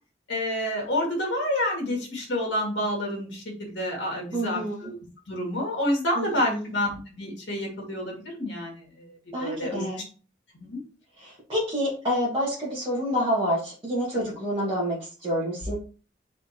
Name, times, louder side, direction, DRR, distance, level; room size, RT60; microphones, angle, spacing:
voice 1, 0.3-4.9 5.3-9.8 10.5-10.8, left 1 dB, 65° left, -1 dB, 2.2 m, -29 dB
voice 2, 4.3-4.9 6.2-6.7 9.3-10.0 11.2-15.7, equal, 25° right, -7 dB, 1.8 m, -28 dB
4.2 x 4.2 x 3.0 m, 0.37 s
head